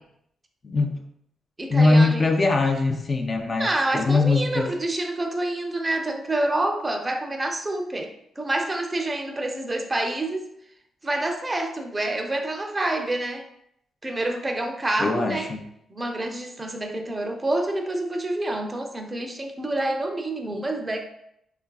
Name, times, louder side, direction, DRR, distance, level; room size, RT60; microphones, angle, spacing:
voice 1, 0.6-1.0 1.7-4.7 15.0-15.6, left 3 dB, 45° left, 3 dB, 0.4 m, -21 dB
voice 2, 1.6-2.3 3.6-10.5 11.0-13.4 14.0-15.5 15.9-21.0, right 1 dB, 25° right, 4 dB, 0.5 m, -27 dB
3.1 x 2.4 x 2.2 m, 0.75 s
supercardioid pair, 50°, 0 cm